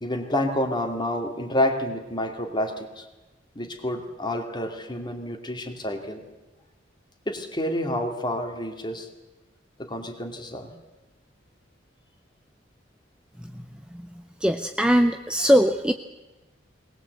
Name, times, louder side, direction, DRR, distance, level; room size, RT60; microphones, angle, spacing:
voice 1, 0.0-3.0 3.6-6.2 7.3-9.1 9.8-10.7, left 1 dB, 25° left, 4 dB, 2.5 m, -29 dB
voice 2, 14.4-15.9, equal, 5° right, 6 dB, 0.7 m, -20 dB
21.0 x 20.0 x 8.1 m, 1.1 s
head